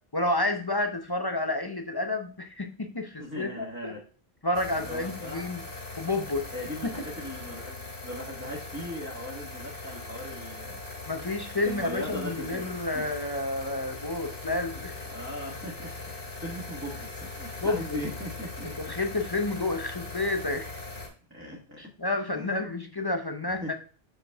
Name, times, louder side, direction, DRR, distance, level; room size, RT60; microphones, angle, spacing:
voice 1, 0.1-3.5 3.8-4.0 4.4-5.6 5.9-6.5 6.8-6.9 11.1-15.0 17.6-18.0 18.6-20.7 21.8-23.7, left 2 dB, 25° left, 6 dB, 0.7 m, -30 dB
voice 2, 3.2-4.0 4.8-5.4 6.5-10.8 11.6-12.7 12.9-13.0 15.1-15.9 16.2-18.7 21.3-21.8 22.3-22.6 23.6-23.7, equal, 15° right, -5 dB, 1.4 m, -39 dB
sound 1, 4.5-21.1, left 3 dB, 75° left, 2.7 m, -40 dB
5.9 x 5.7 x 3.5 m, 0.39 s
omnidirectional pair, 1.0 m